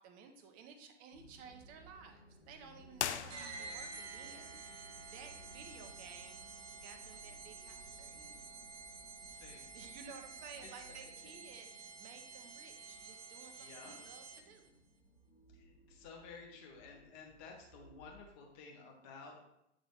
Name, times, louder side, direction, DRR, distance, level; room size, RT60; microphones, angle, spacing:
voice 1, 0.0-4.6 5.0-8.5 9.7-14.8, right 6 dB, 25° right, 6 dB, 0.6 m, -55 dB
sound 1, 1.1-18.2, equal, 85° left, 1.2 m, -61 dB
sound 2, 2.9-4.0, left 10 dB, 65° left, 0.5 m, -39 dB
sound 3, 3.3-14.7, right 4 dB, 75° right, 0.8 m, -50 dB
voice 2, 9.3-9.6 10.9-11.0 13.6-14.0 15.5-19.4, left 5 dB, 35° left, 1 dB, 1.4 m, -53 dB
7.9 x 3.9 x 3.3 m, 0.81 s
figure-of-eight pair, 105°, 37 cm